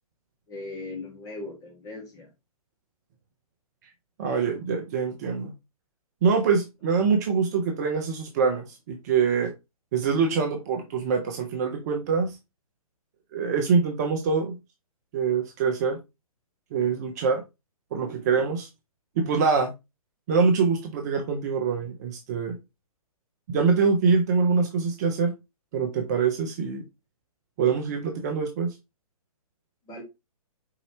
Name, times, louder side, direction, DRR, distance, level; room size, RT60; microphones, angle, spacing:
voice 1, 0.5-2.3 29.8-30.0, left 2 dB, 20° left, 1.6 m, -38 dB
voice 2, 4.2-5.5 6.2-9.5 9.9-12.4 13.3-14.6 15.1-16.0 16.7-17.4 17.9-18.7 19.2-19.7 20.3-22.6 23.5-25.3 25.7-26.8 27.6-28.7, right 5 dB, 30° right, 0.6 m, -24 dB
4.8 x 4.0 x 2.8 m
figure-of-eight pair, 125°, 19 cm